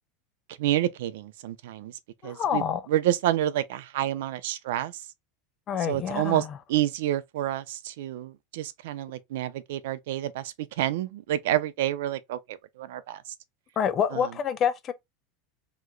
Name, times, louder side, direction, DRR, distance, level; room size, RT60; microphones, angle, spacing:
voice 1, 0.6-1.9 2.2-2.6 2.9-5.0 5.9-13.2 14.1-14.2, right 13 dB, 70° right, 0.4 m, -29 dB
voice 2, 2.2-2.8 5.7-6.6 13.8-14.9, left 8 dB, 20° left, 0.3 m, -27 dB
2.9 x 2.1 x 3.7 m
supercardioid pair, 180°, 0 cm